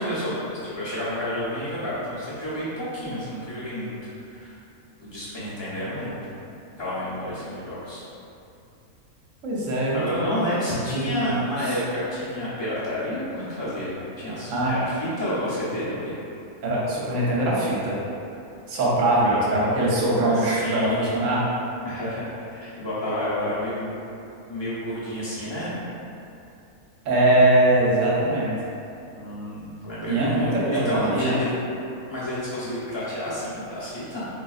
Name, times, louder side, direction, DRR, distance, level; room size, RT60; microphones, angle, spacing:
voice 1, 0.0-3.9 4.3-4.5 5.0-6.2 6.8-8.0 9.9-16.1 19.2-19.5 20.4-21.1 21.8-23.9 24.5-25.9 29.1-31.5 32.1-34.3, equal, 25° left, -11 dB, 0.7 m, -30 dB
voice 2, 9.4-10.4 10.9-11.8 14.5-14.7 16.6-18.0 18.7-21.4 27.0-28.6 30.1-31.3, right 1 dB, 65° right, -6 dB, 1.1 m, -22 dB
3.8 x 2.6 x 2.4 m, 2.7 s
omnidirectional pair, 1.5 m